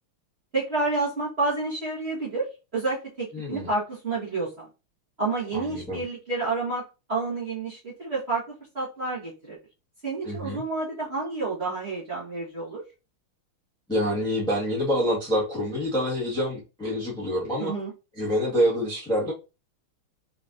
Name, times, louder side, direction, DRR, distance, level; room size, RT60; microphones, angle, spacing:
voice 1, 0.5-2.5 2.7-4.7 5.2-6.8 7.1-9.6 10.0-12.8 17.6-17.9, right 3 dB, 35° right, -7 dB, 1.5 m, -29 dB
voice 2, 3.3-3.7 5.5-6.0 10.2-10.6 13.9-17.7 18.2-19.3, equal, ahead, -6 dB, 1.2 m, -26 dB
3.9 x 3.9 x 2.5 m, 0.30 s
omnidirectional pair, 2.4 m